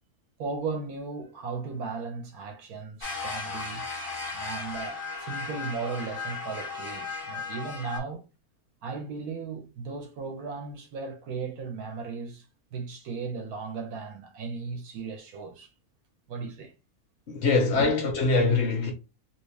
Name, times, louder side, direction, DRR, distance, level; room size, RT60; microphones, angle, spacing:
voice 1, 0.4-3.8 4.3-8.2 8.8-12.4 12.7-15.7 16.3-16.7 17.7-17.9, right 4 dB, 85° right, 1.3 m, -36 dB
sound 1, 3.0-8.0, left 4 dB, 25° left, 1.0 m, -36 dB
voice 2, 17.3-18.9, left 3 dB, 55° left, 1.0 m, -23 dB
3.0 x 2.8 x 3.2 m
omnidirectional pair, 1.5 m